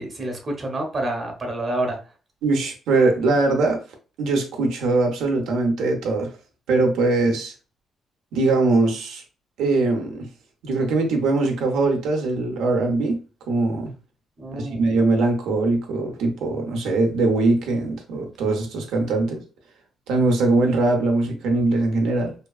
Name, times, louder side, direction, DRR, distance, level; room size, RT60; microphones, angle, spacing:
voice 1, 0.0-2.0 14.4-14.8, right 1 dB, 40° right, 0.8 m, -28 dB
voice 2, 2.4-3.8 4.2-6.3 6.7-7.5 8.3-9.2 9.6-10.3 10.6-13.2 13.5-13.9 14.5-19.4 20.1-22.3, right 3 dB, 85° right, 0.6 m, -21 dB
2.7 x 2.3 x 2.3 m
cardioid pair, 90°, 0 cm